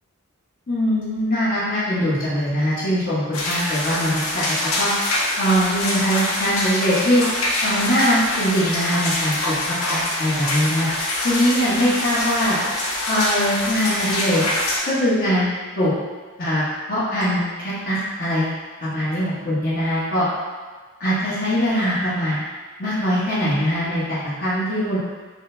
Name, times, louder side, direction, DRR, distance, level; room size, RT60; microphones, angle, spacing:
voice 1, 0.7-4.9 5.4-7.2 7.6-9.5 9.9-10.9 11.2-12.6 13.1-14.4 14.8-15.5 15.8-15.9 16.4-18.5 18.8-20.3 21.0-22.4 22.8-25.0, equal, 45° left, -11 dB, 1.2 m, -22 dB
sound 1, 3.3-14.8, left 1 dB, 80° left, 0.8 m, -25 dB
6.1 x 2.2 x 2.6 m, 1.4 s
head